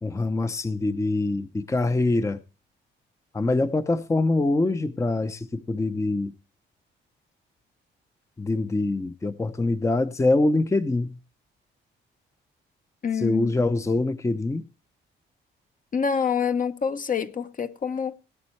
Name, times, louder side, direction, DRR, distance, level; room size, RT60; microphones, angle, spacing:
voice 1, 0.0-2.4 3.3-6.3 8.4-11.2 13.2-14.7, left 2 dB, 15° left, 0.7 m, -24 dB
voice 2, 13.0-13.7 15.9-18.1, left 6 dB, 45° left, 0.9 m, -27 dB
17.5 x 8.1 x 3.2 m
cardioid pair, 90°, 20 cm